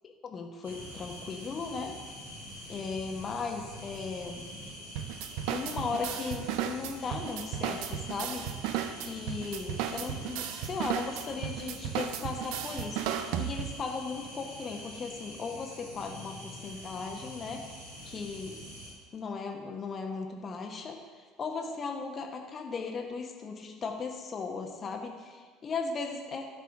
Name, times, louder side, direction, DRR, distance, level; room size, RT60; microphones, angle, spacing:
voice 1, 0.0-2.0 2.7-4.5 5.5-8.5 9.0-17.6 18.0-18.6 19.1-26.5, left 4 dB, 35° left, 3 dB, 1.0 m, -37 dB
sound 1, 0.6-18.9, equal, 90° right, 2.3 m, -45 dB
sound 2, 5.0-13.9, right 9 dB, 60° right, 0.5 m, -35 dB
12.5 x 5.0 x 5.9 m, 1.5 s
figure-of-eight pair, 65°, 0 cm